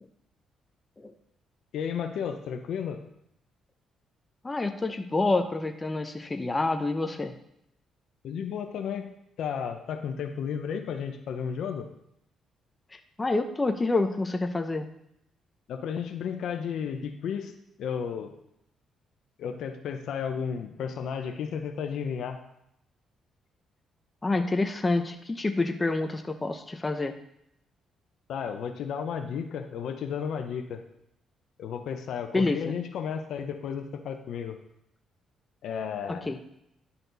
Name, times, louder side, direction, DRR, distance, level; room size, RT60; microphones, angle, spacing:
voice 1, 1.7-3.0 8.2-9.1 9.4-11.9 15.7-17.5 17.8-18.3 19.4-22.4 28.3-30.8 31.6-34.6 35.6-36.3, left 7 dB, 75° left, 6 dB, 0.8 m, -33 dB
voice 2, 4.4-7.3 12.9-14.9 24.2-27.1 32.3-32.7 36.3-36.4, left 2 dB, 20° left, 6 dB, 0.7 m, -28 dB
11.0 x 4.3 x 4.0 m, 0.77 s
cardioid pair, 90°, 0 cm